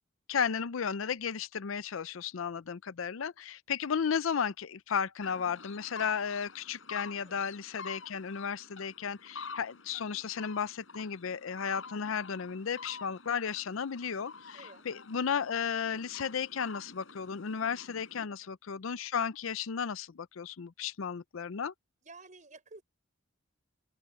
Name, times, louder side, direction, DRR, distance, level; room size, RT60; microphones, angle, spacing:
voice 1, 0.3-21.7, left 7 dB, 90° left, 0.5 m, -34 dB
sound 1, 5.2-18.3, left 4 dB, 70° left, 7.4 m, -49 dB
voice 2, 22.0-22.8, right 3 dB, 40° right, 5.7 m, -52 dB
open air
head